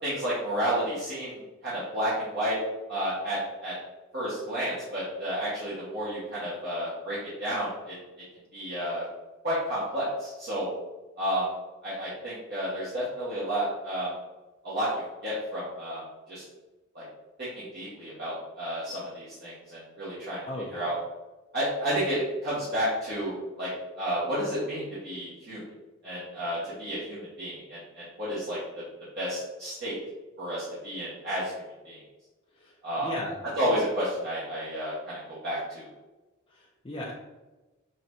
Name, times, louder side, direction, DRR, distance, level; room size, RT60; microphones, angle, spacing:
voice 1, 0.0-2.6 2.9-3.7 4.1-7.9 8.5-9.0 9.4-10.7 11.2-11.5 11.8-14.1 14.6-14.9 15.2-16.0 16.3-16.4 16.9-17.0 17.4-20.4 20.7-21.0 21.5-23.3 23.6-23.7 24.0-25.6 26.0-28.8 29.1-29.9 30.4-31.5 31.8-32.0 32.8-33.1 33.6-35.9, equal, 50° right, -10 dB, 1.4 m, -31 dB
voice 2, 20.5-20.9 32.5-32.7 33.0-33.4 36.5-37.1, left 1 dB, 25° left, -5 dB, 0.5 m, -36 dB
5.6 x 3.1 x 2.7 m, 1.1 s
head